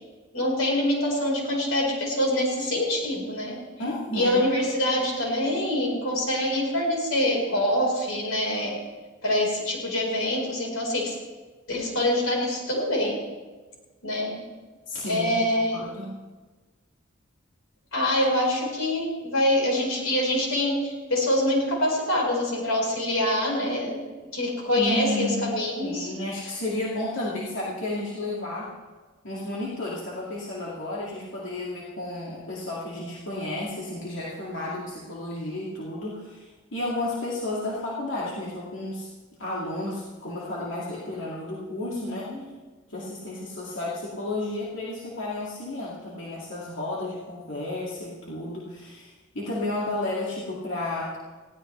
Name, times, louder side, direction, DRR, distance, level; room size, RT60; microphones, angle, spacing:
voice 1, 0.3-3.6 4.1-8.8 9.2-11.1 11.7-13.2 14.0-14.4 15.1-15.9 17.9-24.0 24.3-26.1 41.8-42.4, left 1 dB, 85° left, -2 dB, 4.7 m, -25 dB
voice 2, 3.8-4.5 14.9-16.1 24.8-25.5 25.8-28.7 29.2-39.1 39.4-42.3 42.9-51.2, left 1 dB, 60° left, -6 dB, 2.4 m, -32 dB
20.0 x 16.0 x 3.3 m, 1.3 s
head